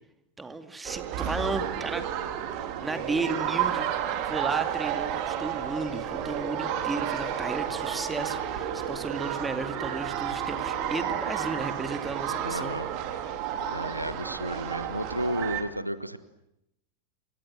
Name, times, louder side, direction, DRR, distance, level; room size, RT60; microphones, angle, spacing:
voice 1, 0.4-2.0 2.8-3.9 4.2-12.7, right 3 dB, 10° right, 9 dB, 2.3 m, -34 dB
sound 1, 0.8-15.6, right 10 dB, 40° right, 3.2 m, -31 dB
sound 2, 5.8-12.8, left 3 dB, 60° left, 7.2 m, -46 dB
voice 2, 12.4-12.9 13.7-16.2, equal, 90° right, 14 dB, 1.4 m, -32 dB
28.0 x 25.5 x 7.7 m, 0.83 s
figure-of-eight pair, 90°, 0 cm